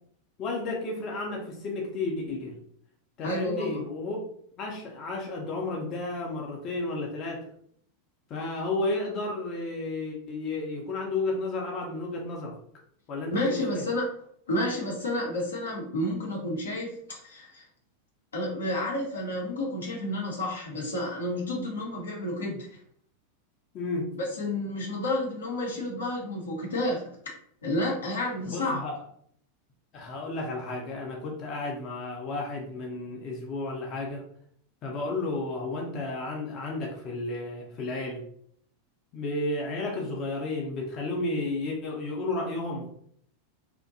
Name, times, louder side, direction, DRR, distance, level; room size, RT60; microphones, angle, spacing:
voice 1, 0.4-2.6 3.2-4.2 4.6-7.4 8.3-12.6 13.1-13.8 23.7-24.1 28.4-29.0 29.9-34.2 34.8-38.2 39.1-42.9, left 2 dB, 35° left, -1 dB, 0.5 m, -32 dB
voice 2, 3.2-3.7 8.3-8.6 13.3-14.1 14.5-17.6 18.3-22.8 24.1-27.1 27.6-28.8, left 1 dB, 70° left, -1 dB, 0.7 m, -30 dB
2.6 x 2.1 x 2.6 m, 0.65 s
figure-of-eight pair, 90°, 0 cm